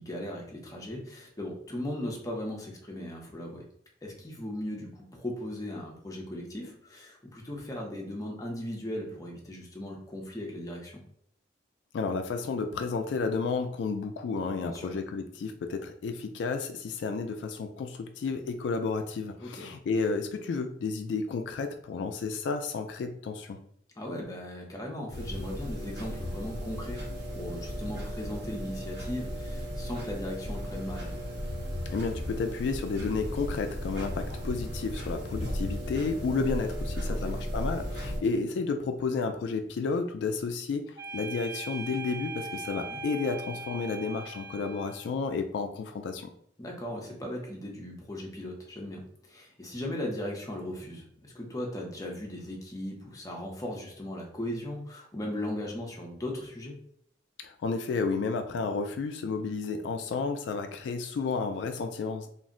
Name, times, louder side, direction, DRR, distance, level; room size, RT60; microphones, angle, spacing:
voice 1, 0.0-3.6 4.0-11.0 14.6-14.9 19.4-19.7 24.0-27.0 27.3-31.2 37.0-37.4 42.9-43.0 46.6-56.8, left 1 dB, 20° left, -1 dB, 0.6 m, -37 dB
voice 2, 11.9-23.6 31.9-46.3 57.4-62.3, left 4 dB, 80° left, 6 dB, 0.3 m, -32 dB
sound 1, 25.1-38.2, equal, 65° right, 1.2 m, -35 dB
sound 2, 41.0-45.2, right 3 dB, 25° right, 0.7 m, -40 dB
2.5 x 2.0 x 3.7 m, 0.67 s
head